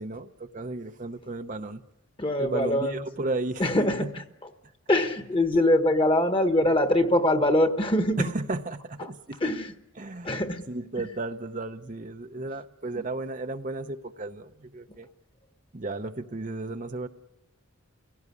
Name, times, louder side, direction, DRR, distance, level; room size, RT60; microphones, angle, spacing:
voice 1, 0.0-1.8 2.4-3.6 4.0-4.1 8.2-9.4 10.0-15.1 15.7-17.1, right 2 dB, 40° right, 0.8 m, -34 dB
voice 2, 2.2-2.9 3.6-4.1 4.9-8.3 9.4-9.7 10.2-10.6, left 1 dB, 25° left, 1.4 m, -23 dB
29.0 x 17.5 x 9.8 m
head